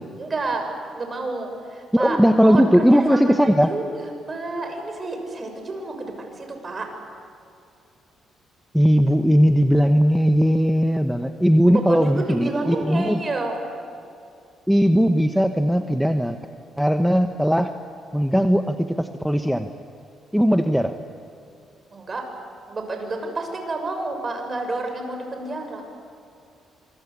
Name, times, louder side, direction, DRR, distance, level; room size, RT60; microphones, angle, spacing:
voice 1, 0.2-0.7 0.9-6.9 11.7-13.6 21.9-22.2 22.7-25.8, right 2 dB, 35° right, 4 dB, 6.7 m, -30 dB
voice 2, 1.9-3.7 8.7-13.2 14.7-16.4 16.8-17.7 18.1-19.7 20.3-21.0, equal, ahead, 7 dB, 1.2 m, -18 dB
27.0 x 24.5 x 8.5 m, 2.6 s
cardioid pair, 90°, 0 cm